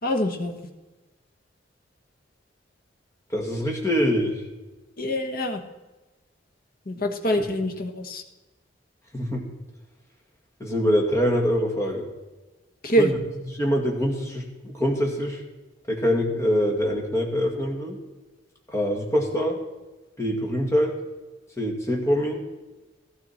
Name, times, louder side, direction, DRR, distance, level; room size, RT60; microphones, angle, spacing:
voice 1, 0.0-0.5 5.0-5.6 6.9-8.2 12.8-13.1, equal, 55° left, 5 dB, 1.3 m, -24 dB
voice 2, 3.3-4.4 9.1-9.4 10.6-12.1 13.0-13.1 13.5-15.4 15.9-18.0 18.7-19.6 20.2-21.0 21.6-22.4, equal, 15° left, 0 dB, 2.2 m, -24 dB
14.0 x 13.0 x 4.3 m, 1.1 s
head